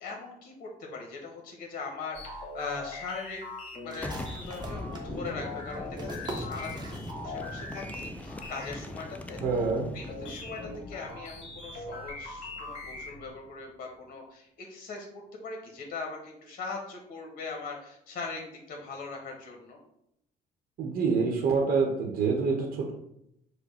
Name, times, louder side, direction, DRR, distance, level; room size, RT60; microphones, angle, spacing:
voice 1, 0.0-3.4 3.8-9.4 9.9-10.6 10.9-19.8, left 4 dB, 55° left, 1 dB, 1.0 m, -40 dB
sound 1, 2.1-13.3, left 2 dB, 40° left, 1.5 m, -42 dB
sound 2, 3.9-7.5 7.8-7.9 8.3-8.8, right 2 dB, 25° right, 0.9 m, -43 dB
Boom, 4.0-13.5, left 1 dB, 10° left, 0.3 m, -42 dB
voice 2, 9.4-9.9 20.8-22.9, right 4 dB, 60° right, 0 dB, 0.9 m, -26 dB
4.9 x 2.2 x 4.8 m, 0.78 s
cardioid pair, 110°, 17 cm